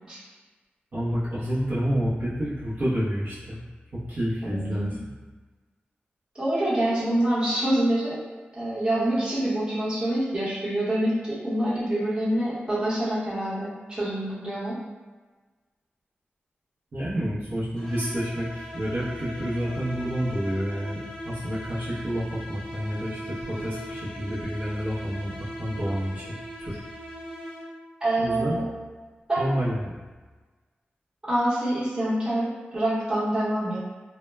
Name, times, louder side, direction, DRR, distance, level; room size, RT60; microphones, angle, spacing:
voice 1, 0.9-3.6 4.1-5.1 16.9-26.8 28.2-28.6 29.4-29.9, equal, 55° right, -10 dB, 0.7 m, -29 dB
voice 2, 4.4-4.9 6.3-8.2 8.5-14.8 28.0-28.6 29.3-29.5 31.3-33.8, right 1 dB, 25° right, -9 dB, 0.9 m, -26 dB
sound 1, 17.7-28.0, equal, 10° left, 0.9 m, -39 dB
2.1 x 2.1 x 3.3 m, 1.3 s
wide cardioid pair, 130°, 4 cm